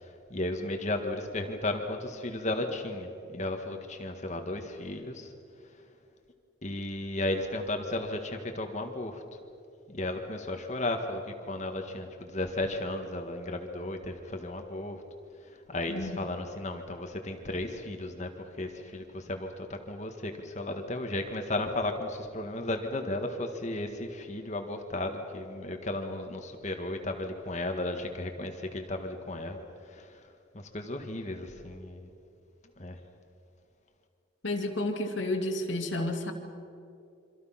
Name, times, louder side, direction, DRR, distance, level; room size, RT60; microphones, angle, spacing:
voice 1, 0.0-5.3 6.6-9.2 9.9-15.0 15.7-18.3 18.6-30.3 30.5-32.1 32.8-33.0, left 2 dB, 40° left, 4 dB, 1.7 m, -34 dB
voice 2, 34.4-36.3, left 1 dB, 80° left, 2 dB, 2.5 m, -31 dB
27.0 x 25.5 x 5.9 m, 2.6 s
head